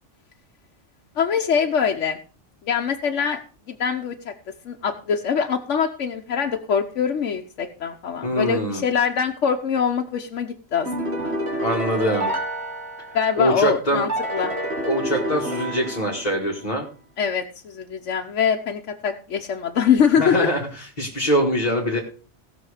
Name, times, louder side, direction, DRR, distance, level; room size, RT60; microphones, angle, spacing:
voice 1, 1.2-2.2 2.7-3.4 3.7-4.3 4.6-11.3 13.1-14.5 17.2-20.5, left 7 dB, 85° left, 2 dB, 1.2 m, -23 dB
voice 2, 8.2-8.8 11.6-12.3 13.4-14.0 14.9-16.9 20.2-22.0, equal, 35° left, -2 dB, 1.9 m, -23 dB
sound 1, 10.9-13.5 14.1-16.6, right 1 dB, 65° right, 2.5 m, -28 dB
17.5 x 6.2 x 4.9 m, 0.38 s
omnidirectional pair, 1.2 m